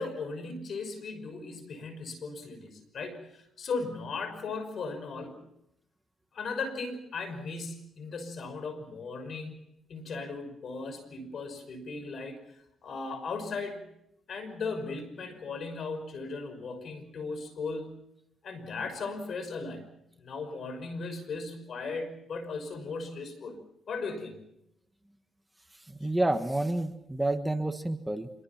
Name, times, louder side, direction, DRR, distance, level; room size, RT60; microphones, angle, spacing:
voice 1, 0.0-5.4 6.3-9.6 9.9-13.8 14.3-17.9 18.4-19.9 20.2-23.6 23.9-24.4 26.0-26.1, left 4 dB, 55° left, 10 dB, 5.6 m, -37 dB
voice 2, 26.0-28.3, right 1 dB, 10° right, 7 dB, 1.5 m, -29 dB
27.0 x 22.5 x 6.0 m, 0.80 s
cardioid pair, 90°, 0 cm